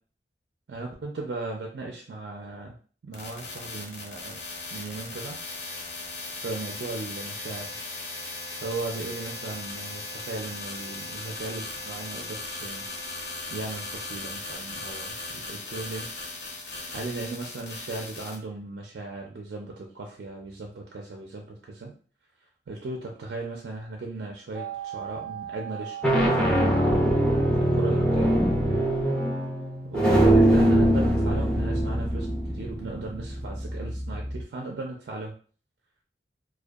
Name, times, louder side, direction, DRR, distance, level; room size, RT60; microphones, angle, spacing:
voice 1, 0.7-2.7 3.0-4.4 4.7-5.4 6.3-7.7 8.6-12.8 13.5-16.1 16.9-21.9 22.7-26.8 27.6-28.3 29.9-32.3 32.5-35.3, right 3 dB, 65° right, 1 dB, 0.4 m, -37 dB
sound 1, 3.1-18.4, left 2 dB, 65° left, 0.6 m, -37 dB
sound 2, 24.6-25.0 25.8-34.4, right 1 dB, 5° left, 0.4 m, -23 dB
2.5 x 2.2 x 2.3 m, 0.42 s
head